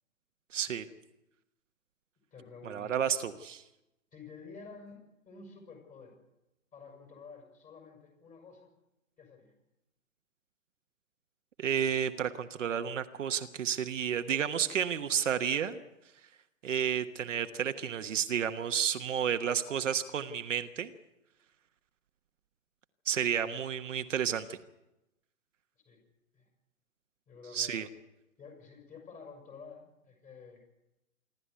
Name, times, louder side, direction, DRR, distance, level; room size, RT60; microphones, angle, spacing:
voice 1, 0.5-0.9 2.6-3.6 11.6-15.8 16.6-20.9 23.0-24.6 27.5-27.9, right 8 dB, 60° right, 8 dB, 1.3 m, -31 dB
voice 2, 2.3-2.9 4.1-6.2 6.7-8.7 9.2-9.5 25.7-26.0 26.3-26.5 27.3-27.9 28.4-30.6, left 4 dB, 20° left, 3 dB, 6.4 m, -50 dB
26.5 x 12.5 x 8.2 m, 0.94 s
figure-of-eight pair, 125°, 41 cm